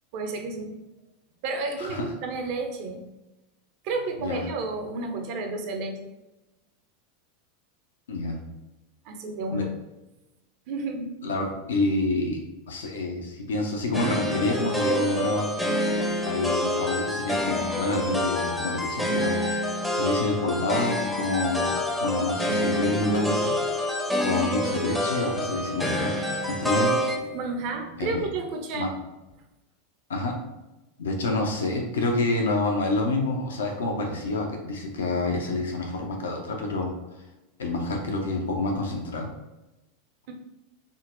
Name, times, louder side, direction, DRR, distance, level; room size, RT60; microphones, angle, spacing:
voice 1, 0.1-0.8 1.4-3.0 3.8-6.1 9.1-9.7 10.7-11.2 27.2-28.9 40.3-40.4, right 3 dB, 50° right, 4 dB, 0.5 m, -31 dB
voice 2, 8.1-8.4 9.5-9.7 11.2-12.4 12.7-15.5 16.3-19.4 19.9-21.7 22.0-23.5 24.2-26.2 26.5-26.9 28.0-28.2 28.7-28.9 30.1-30.4 31.0-36.9 37.6-39.3, left 2 dB, 70° left, 2 dB, 0.5 m, -27 dB
sound 1, 13.9-27.2, left 1 dB, 5° left, 0.5 m, -27 dB
3.7 x 2.1 x 2.5 m, 0.99 s
figure-of-eight pair, 85°, 0 cm